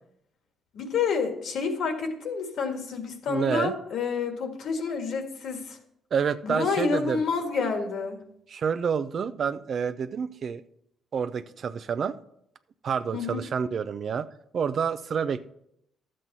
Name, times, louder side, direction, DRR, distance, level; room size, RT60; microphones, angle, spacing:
voice 1, 0.7-5.8 6.4-8.3 13.1-13.4, left 5 dB, 75° left, 4 dB, 1.7 m, -29 dB
voice 2, 3.3-3.7 6.1-7.2 8.5-10.6 11.1-12.2 12.8-14.3 14.5-15.5, right 6 dB, 55° right, 13 dB, 0.5 m, -28 dB
12.0 x 7.6 x 4.1 m, 0.75 s
cardioid pair, 90°, 0 cm